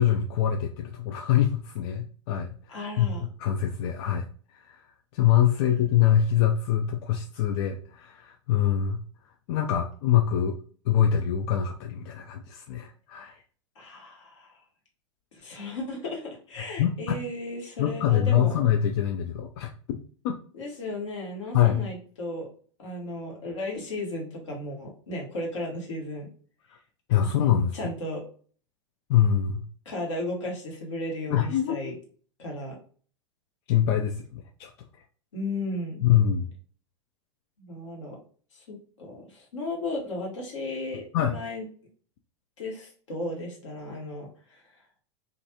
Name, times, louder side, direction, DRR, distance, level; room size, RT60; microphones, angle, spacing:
voice 1, 0.0-3.1 3.4-4.9 5.1-9.0 9.5-10.6 10.9-13.4 16.8-16.9 17.8-20.0 20.2-20.4 21.5-21.9 27.1-27.8 29.1-29.7 31.3-31.8 33.7-34.7 36.0-36.5 41.1-41.4, left 10 dB, 50° left, 3 dB, 0.4 m, -24 dB
voice 2, 2.7-3.3 13.8-14.6 15.4-18.6 20.5-22.5 22.8-26.3 27.7-28.2 29.8-31.9 32.4-32.8 35.3-36.0 37.6-38.2 38.5-41.7 42.6-44.6, left 1 dB, 75° left, -1 dB, 1.2 m, -35 dB
2.5 x 2.3 x 2.7 m, 0.43 s
hypercardioid pair, 95°, 16 cm